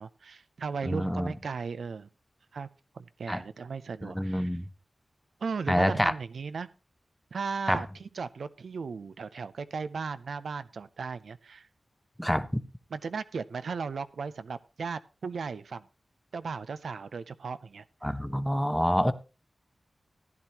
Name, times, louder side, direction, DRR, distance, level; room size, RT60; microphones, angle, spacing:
voice 1, 0.0-2.1 2.5-2.7 2.9-4.6 5.4-6.7 7.3-11.7 12.2-12.3 12.9-15.9 16.3-17.8, right 5 dB, 90° right, 0.5 m, -36 dB
voice 2, 0.8-1.3 3.3-3.4 4.0-4.7 5.7-6.1 7.7-7.8 12.2-12.6 18.0-19.1, equal, 5° left, 0.7 m, -27 dB
14.5 x 10.0 x 2.9 m
wide cardioid pair, 70°, 0 cm